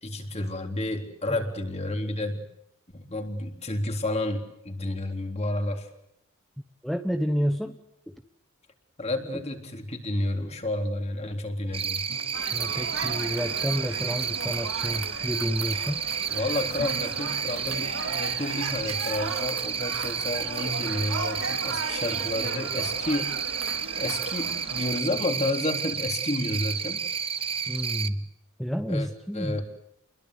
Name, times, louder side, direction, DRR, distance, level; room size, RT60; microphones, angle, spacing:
voice 1, 0.0-2.4 2.9-5.9 9.0-12.0 16.3-23.4 24.0-27.0 28.9-29.1 29.3-29.6, left 1 dB, 30° left, 4 dB, 3.8 m, -30 dB
voice 2, 6.8-7.8 8.1-8.2 12.5-16.0 27.7-28.3 28.6-29.6, equal, ahead, 6 dB, 1.0 m, -30 dB
Cricket, 11.7-28.1, right 7 dB, 25° right, 1.1 m, -31 dB
sound 1, 12.1-14.4 16.8-19.7, equal, 75° left, 3.1 m, -47 dB
sound 2, 12.3-25.0, right 4 dB, 70° right, 2.3 m, -36 dB
29.0 x 22.0 x 8.2 m, 0.78 s
head